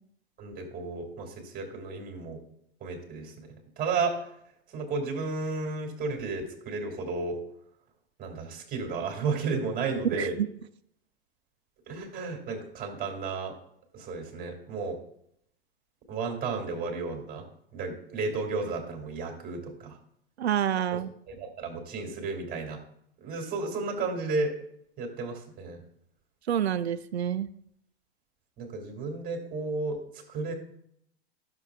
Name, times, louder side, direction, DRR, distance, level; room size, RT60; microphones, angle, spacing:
voice 1, 0.4-2.4 2.8-4.3 4.7-7.4 8.2-10.4 11.9-13.6 13.9-15.0 16.1-17.4 17.7-20.0 21.3-22.8 23.2-24.5 25.0-25.8 28.6-30.0 30.3-30.5, right 4 dB, 30° right, 2 dB, 2.4 m, -33 dB
voice 2, 10.1-10.5 20.4-21.1 26.5-27.5, right 9 dB, 90° right, 13 dB, 0.5 m, -28 dB
13.0 x 6.9 x 2.4 m, 0.71 s
hypercardioid pair, 100°, 31 cm